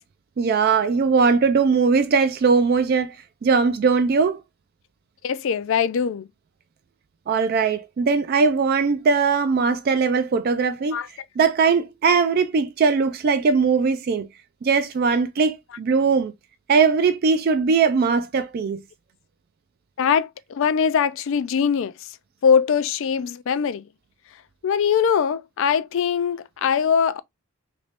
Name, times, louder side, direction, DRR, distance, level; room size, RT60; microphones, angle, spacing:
voice 1, 0.4-3.2 3.4-4.4 7.3-11.0 11.4-14.3 14.6-16.3 16.7-18.8, right 5 dB, 45° right, 0.3 m, -20 dB
voice 2, 5.2-6.3 10.9-11.1 20.0-21.9 22.4-23.8 24.6-27.2, left 7 dB, 60° left, 0.3 m, -21 dB
3.0 x 2.6 x 3.3 m
head